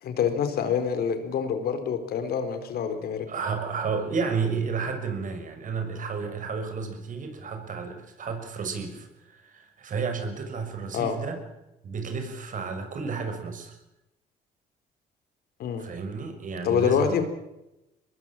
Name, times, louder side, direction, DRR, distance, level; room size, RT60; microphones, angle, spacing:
voice 1, 0.0-3.3 10.9-11.2 15.6-15.9 16.6-17.2, left 7 dB, 75° left, 8 dB, 4.2 m, -26 dB
voice 2, 3.3-11.4 11.8-13.8 15.8-17.1, right 5 dB, 55° right, 6 dB, 6.3 m, -32 dB
23.5 x 20.5 x 7.5 m, 0.92 s
cardioid pair, 90°, 16 cm